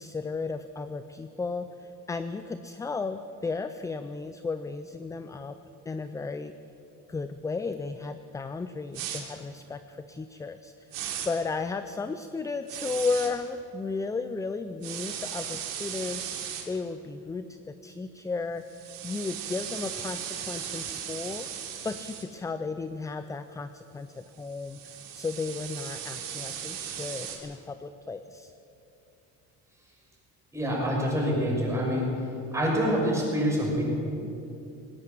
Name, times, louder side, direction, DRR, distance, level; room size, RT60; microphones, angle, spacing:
voice 1, 0.0-5.6 5.9-6.5 7.1-18.6 19.0-21.5 21.8-24.8 25.1-28.5, left 4 dB, 10° left, 10 dB, 0.4 m, -34 dB
sound 1, 8.9-9.2 10.9-11.3 12.7-13.3 14.8-16.6 18.7-22.2 24.4-27.4, right 9 dB, 85° right, 3.2 m, -37 dB
voice 2, 30.5-32.1 32.5-33.8, equal, 10° right, -3 dB, 5.8 m, -26 dB
19.5 x 17.5 x 7.6 m, 2.8 s
cardioid pair, 150°, 33 cm